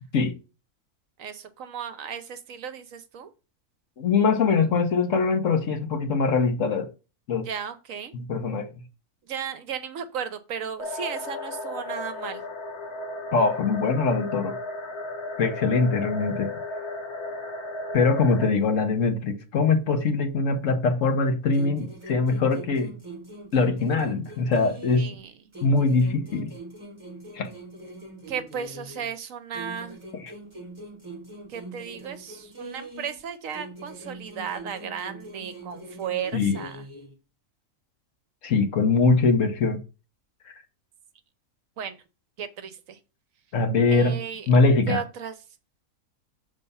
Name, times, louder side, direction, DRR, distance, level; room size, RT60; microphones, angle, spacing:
voice 1, 1.2-3.3 7.3-8.1 9.3-12.4 24.9-25.3 28.3-30.0 31.5-36.8 41.8-42.0 42.4-43.0 43.9-44.5 44.9-45.4, right 7 dB, 65° right, 1.0 m, -35 dB
voice 2, 4.0-6.9 7.3-7.5 8.1-8.7 13.3-14.6 15.4-16.5 17.9-23.0 23.5-25.1 25.6-26.5 27.3-27.5 30.2-30.3 36.3-36.6 38.4-39.8 43.5-44.2 44.5-45.0, left 4 dB, 60° left, 1.2 m, -22 dB
sound 1, 10.8-18.5, left 2 dB, 80° left, 1.7 m, -34 dB
sound 2, 21.5-25.2 25.5-29.2 29.5-33.2 33.5-37.2, right 2 dB, 20° right, 1.1 m, -42 dB
6.7 x 3.6 x 5.4 m
omnidirectional pair, 1.6 m